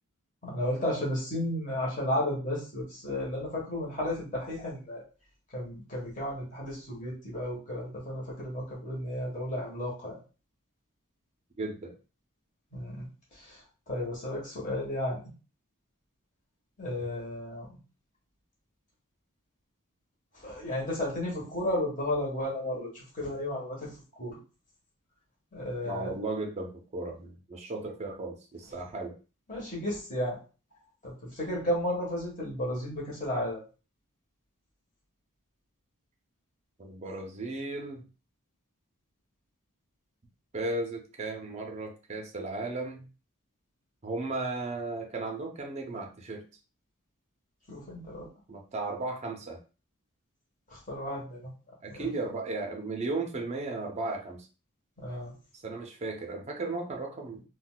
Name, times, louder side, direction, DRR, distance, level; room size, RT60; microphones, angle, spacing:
voice 1, 0.4-5.0 5.5-10.2 12.7-13.1 13.4-13.6 13.9-15.2 16.8-17.8 20.3-23.9 24.2-24.4 25.5-26.1 29.5-30.4 31.0-33.6 47.7-48.3 50.7-51.5 51.9-52.1 55.0-55.3, left 1 dB, 35° left, -5 dB, 1.2 m, -33 dB
voice 2, 11.6-11.9 25.8-29.1 36.8-38.0 40.5-43.1 44.0-46.4 48.5-49.6 51.8-54.4 55.6-57.4, right 2 dB, 30° right, 2 dB, 0.5 m, -35 dB
3.8 x 2.3 x 2.2 m, 0.34 s
head